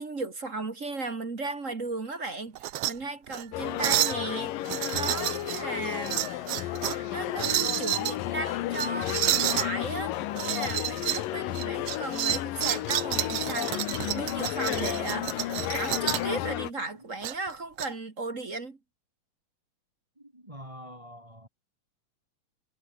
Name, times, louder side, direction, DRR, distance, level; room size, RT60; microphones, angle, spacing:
voice 1, 0.0-6.2 7.1-10.2 10.4-13.8 14.1-18.8, right 3 dB, 30° right, 1.8 m, -36 dB
sound 1, 2.5-2.9 3.3-3.4 3.8-4.2 4.6-5.6 6.0-7.0 7.4-8.1 8.7-9.7 10.3-11.2 11.5-16.3 17.2-17.9, right 14 dB, 90° right, 1.3 m, -30 dB
sound 2, 3.5-16.7, left 14 dB, 85° left, 2.8 m, -32 dB
voice 2, 20.2-21.5, equal, 10° right, 4.4 m, -46 dB
omnidirectional pair, 3.8 m